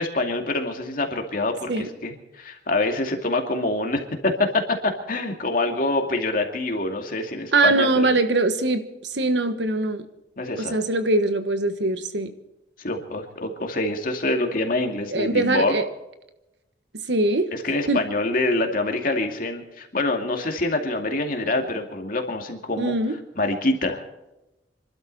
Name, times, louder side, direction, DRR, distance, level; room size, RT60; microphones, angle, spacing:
voice 1, 0.0-8.1 10.4-10.8 12.8-15.8 17.5-22.9 23.4-24.0, left 2 dB, 50° left, 3 dB, 2.4 m, -25 dB
voice 2, 7.5-10.0 10.6-12.3 15.1-15.8 17.1-17.5 17.9-18.0 22.8-23.2, right 2 dB, 75° right, 9 dB, 1.4 m, -22 dB
26.5 x 12.5 x 4.1 m, 0.95 s
head